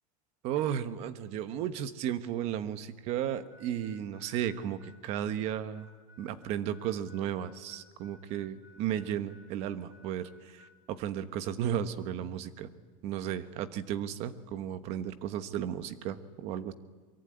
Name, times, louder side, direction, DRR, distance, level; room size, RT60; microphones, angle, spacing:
voice 1, 0.4-5.9 6.2-12.7 13.0-16.7, right 10 dB, 35° right, 12 dB, 1.2 m, -34 dB
Harmonica, 3.2-10.8, left 2 dB, 15° right, 7.6 m, -59 dB
23.5 x 23.0 x 9.7 m, 1.4 s
supercardioid pair, 175°, 18 cm